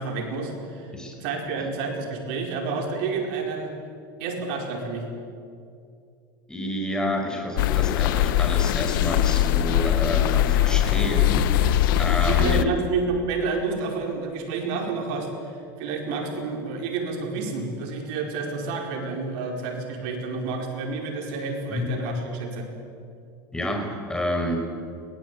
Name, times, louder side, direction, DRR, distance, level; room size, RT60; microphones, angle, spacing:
voice 1, 0.0-0.9 1.2-3.7 4.2-5.1 12.2-22.7, right 4 dB, 70° right, 2 dB, 5.0 m, -29 dB
voice 2, 6.5-12.7 21.7-21.9 23.5-24.6, equal, 5° left, 2 dB, 5.2 m, -29 dB
sound 1, 7.6-12.7, left 12 dB, 80° left, 0.9 m, -21 dB
22.5 x 18.0 x 8.5 m, 2.4 s
supercardioid pair, 110°, 11 cm